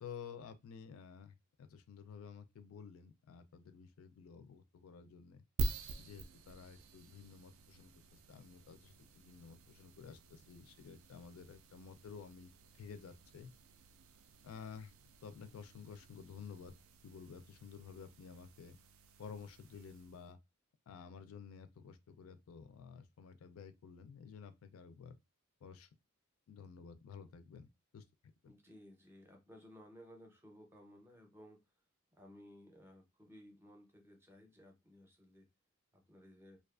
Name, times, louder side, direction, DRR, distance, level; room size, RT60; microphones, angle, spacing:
voice 1, 0.0-5.4 6.0-13.5 14.4-14.9 15.2-16.7 17.0-18.8 19.2-20.4 20.9-25.2 25.6-25.9 26.5-28.0 28.4-28.5, left 6 dB, 75° left, 0.4 m, -52 dB
sound 1, 5.6-20.3, right 2 dB, 70° right, 0.3 m, -47 dB
voice 2, 28.4-31.6 32.1-35.5 35.9-36.6, equal, 10° right, 0.5 m, -58 dB
2.4 x 2.3 x 2.3 m
head